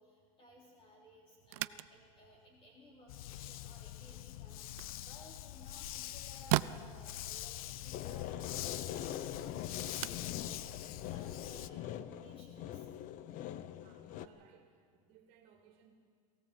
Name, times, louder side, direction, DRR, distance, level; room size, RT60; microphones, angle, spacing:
voice 1, 0.0-7.6 7.8-12.9, left 1 dB, 30° left, 3.7 m, -59 dB
sound 1, 1.4-11.9, right 18 dB, 75° right, 0.6 m, -43 dB
Dog, 3.1-11.7, left 13 dB, 85° left, 0.8 m, -44 dB
sound 2, 7.9-14.3, left 11 dB, 45° left, 0.9 m, -43 dB
voice 2, 12.6-12.9 13.8-15.9, right 8 dB, 55° right, 2.5 m, -64 dB
22.5 x 17.0 x 7.6 m
supercardioid pair, 130°, 18 cm